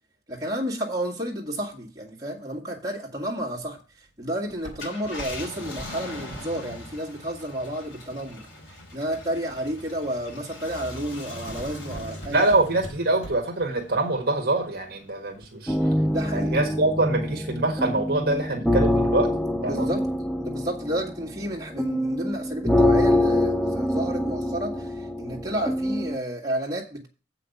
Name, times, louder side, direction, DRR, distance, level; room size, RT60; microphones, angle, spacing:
voice 1, 0.3-8.4 8.9-12.5 16.0-16.7 19.6-20.0 20.4-27.1, right 1 dB, 20° right, 1.9 m, -31 dB
Walk footsteps, 3.4-8.5 9.1-9.5 10.1-10.4 10.8-13.6 14.0-14.1, right 1 dB, 35° left, 4.3 m, -42 dB
Car, 4.6-15.5 16.0-16.1 18.1-18.3, left 1 dB, 90° left, 3.3 m, -41 dB
voice 2, 12.3-15.8 16.3-19.3 19.6-19.9, right 2 dB, 50° right, 1.4 m, -24 dB
sound 1, 15.7-26.2, left 1 dB, ahead, 0.4 m, -25 dB
7.8 x 5.7 x 6.7 m
head